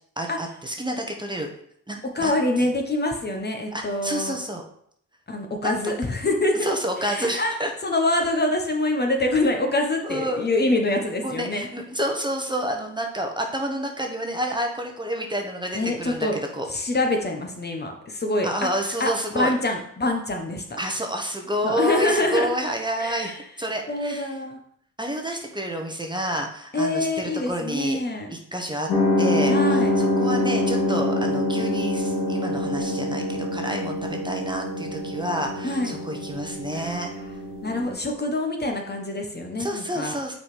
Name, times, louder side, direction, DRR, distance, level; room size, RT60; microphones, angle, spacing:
voice 1, 0.2-1.5 1.9-2.7 3.7-4.6 5.6-5.7 6.5-7.7 10.0-10.4 11.2-16.7 18.4-19.5 20.8-24.3 25.0-28.0 28.3-28.9 29.2-29.5 30.0-37.1 39.6-40.3, equal, 15° right, 2 dB, 1.2 m, -29 dB
voice 2, 2.1-4.4 5.3-6.7 7.0-7.5 7.8-11.7 15.7-16.3 16.7-18.7 19.0-20.6 21.6-22.5 23.0-23.4 23.9-24.6 26.7-28.3 29.5-29.9 35.6-36.0 36.7-37.0 37.6-40.2, left 2 dB, 30° left, 3 dB, 1.2 m, -25 dB
sound 1, 28.9-37.9, left 1 dB, 65° left, 2.0 m, -25 dB
5.8 x 4.2 x 5.1 m, 0.67 s
supercardioid pair, 65°, 35 cm